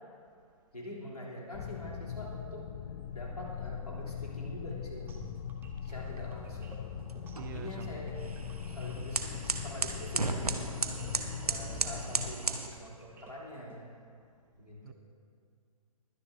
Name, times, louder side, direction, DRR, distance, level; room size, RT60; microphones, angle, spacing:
voice 1, 0.7-2.7 3.1-5.3 5.8-6.9 7.5-8.2 8.7-11.0 11.4-13.8 14.5-14.9, equal, 90° left, -4 dB, 3.2 m, -45 dB
sound 1, 1.5-12.3, left 8 dB, 30° left, 0.4 m, -41 dB
sound 2, 5.1-13.8, right 1 dB, 10° right, 1.0 m, -53 dB
sound 3, 5.9-12.7, right 3 dB, 85° right, 1.1 m, -36 dB
voice 2, 7.3-8.1 14.8-14.9, right 9 dB, 35° right, 11 dB, 0.5 m, -46 dB
22.0 x 9.9 x 2.7 m, 2.3 s
figure-of-eight pair, 130°, 19 cm